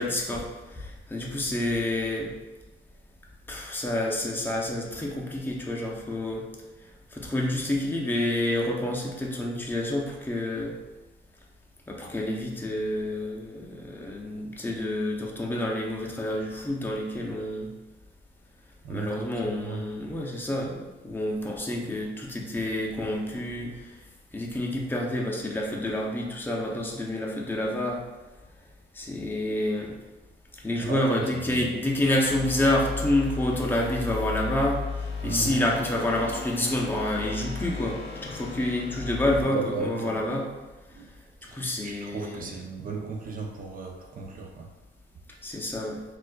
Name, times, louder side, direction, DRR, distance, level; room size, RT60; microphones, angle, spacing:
voice 1, 0.0-2.4 3.5-6.5 7.1-10.7 11.9-17.7 18.9-23.9 24.3-28.0 28.9-29.9 30.6-40.5 41.5-42.5 45.4-46.0, left 1 dB, 10° left, -2 dB, 0.6 m, -28 dB
voice 2, 18.8-19.3 19.6-19.8 30.8-31.7 35.2-35.5 39.4-40.2 40.9-41.1 41.4-44.7, right 4 dB, 45° right, 1 dB, 0.6 m, -35 dB
sound 1, 32.3-39.4, left 5 dB, 60° left, 0.6 m, -35 dB
4.2 x 2.5 x 2.2 m, 1.1 s
cardioid pair, 90°, 20 cm